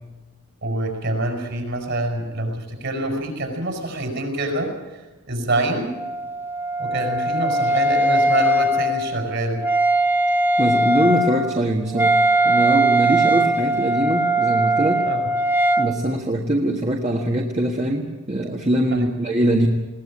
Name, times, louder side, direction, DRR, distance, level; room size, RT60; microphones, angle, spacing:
voice 1, 0.6-6.0 6.8-9.7 15.0-15.3 18.9-19.1, right 2 dB, 55° right, 3 dB, 6.0 m, -26 dB
Wind instrument woodwind instrument, 5.9-15.9, right 1 dB, 10° right, 1.0 m, -20 dB
voice 2, 10.6-12.2 12.4-15.0 15.8-19.7, right 1 dB, 30° right, 1 dB, 1.6 m, -22 dB
21.0 x 18.0 x 8.7 m, 1.2 s
head